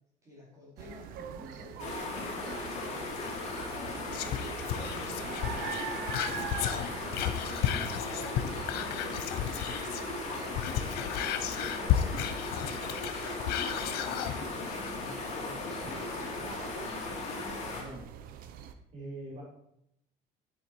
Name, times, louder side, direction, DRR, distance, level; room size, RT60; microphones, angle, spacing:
voice 1, 0.2-7.4 7.8-9.6 10.1-11.2 11.5-13.1 13.6-15.0 15.4-17.2, left 1 dB, 20° right, -4 dB, 3.9 m, -51 dB
sound 1, 0.8-18.7, right 9 dB, 60° right, 0.9 m, -44 dB
sound 2, 1.8-17.8, left 3 dB, 40° left, 3.4 m, -37 dB
Whispering, 4.1-10.1 10.4-14.4 14.8-14.9, left 11 dB, 70° left, 1.0 m, -33 dB
voice 2, 15.0-15.9 17.7-18.1 18.5-19.4, right 1 dB, 45° right, -4 dB, 5.0 m, -46 dB
11.0 x 8.0 x 4.9 m, 0.79 s
cardioid pair, 160°, 17 cm